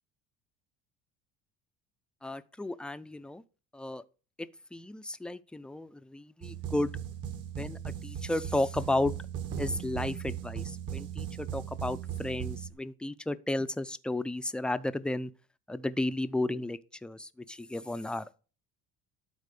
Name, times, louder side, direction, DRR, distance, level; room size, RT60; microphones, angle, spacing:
voice 1, 2.2-3.4 3.7-4.0 4.4-6.9 7.6-9.1 9.6-15.3 15.7-18.4, left 2 dB, 5° left, 0.5 m, -33 dB
sound 1, 6.4-12.7, right 9 dB, 55° right, 1.6 m, -38 dB
12.0 x 4.2 x 6.8 m
cardioid pair, 125°, 30 cm